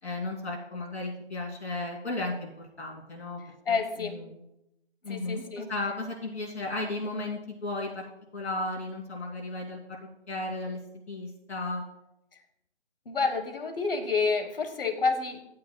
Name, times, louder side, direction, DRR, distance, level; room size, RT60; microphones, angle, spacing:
voice 1, 0.0-3.4 3.7-4.3 5.0-8.0 8.3-10.8 11.1-11.8, left 2 dB, 70° left, -2 dB, 2.7 m, -35 dB
voice 2, 3.7-4.2 5.1-5.7 13.0-15.4, left 4 dB, 50° left, 8 dB, 1.2 m, -29 dB
16.0 x 8.9 x 2.2 m, 0.89 s
figure-of-eight pair, 155°, 35 cm